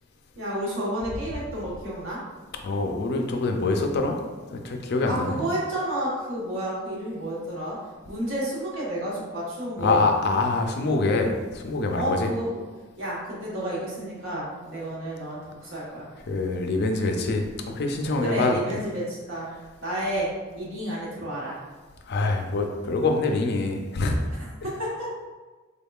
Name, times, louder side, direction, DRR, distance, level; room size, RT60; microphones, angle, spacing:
voice 1, 0.4-2.2 5.0-7.8 8.1-10.1 11.9-12.6 13.0-16.1 18.2-19.5 19.8-20.3 20.5-21.6 24.8-25.1, right 1 dB, 70° right, -6 dB, 1.2 m, -30 dB
voice 2, 2.6-4.2 4.5-5.5 9.8-12.3 16.3-18.6 22.1-24.2, left 3 dB, 55° left, 4 dB, 0.4 m, -25 dB
3.6 x 3.5 x 2.3 m, 1.3 s
head